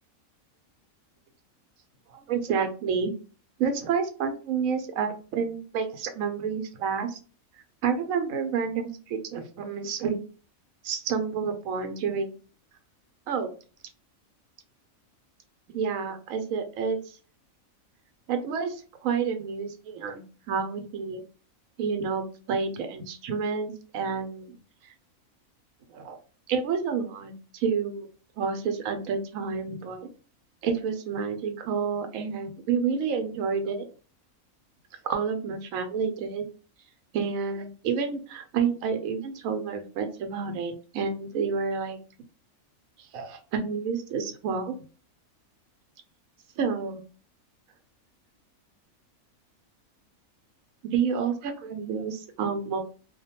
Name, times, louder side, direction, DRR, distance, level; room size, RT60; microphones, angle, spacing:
voice 1, 2.3-3.1 3.6-7.2 7.8-10.2 10.8-12.4 13.3-13.5 15.7-17.2 18.3-21.2 21.8-24.6 25.9-26.2 26.5-28.1 28.4-30.1 30.6-33.9 35.0-36.5 37.1-42.0 43.1-44.8 46.6-47.0 50.8-52.8, right 6 dB, 80° right, 6 dB, 1.0 m, -29 dB
2.5 x 2.1 x 2.8 m, 0.37 s
omnidirectional pair, 1.4 m